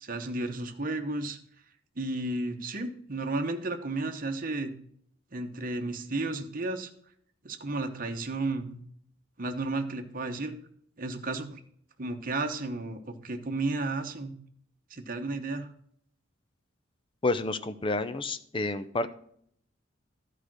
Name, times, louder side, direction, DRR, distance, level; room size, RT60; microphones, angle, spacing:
voice 1, 0.0-1.4 2.0-4.7 5.3-6.9 7.4-8.8 9.4-10.5 11.0-11.6 12.0-14.4 14.9-15.7, right 2 dB, 45° right, 6 dB, 1.0 m, -33 dB
voice 2, 17.2-19.1, left 2 dB, 25° left, 12 dB, 0.5 m, -29 dB
12.0 x 5.0 x 6.1 m, 0.65 s
head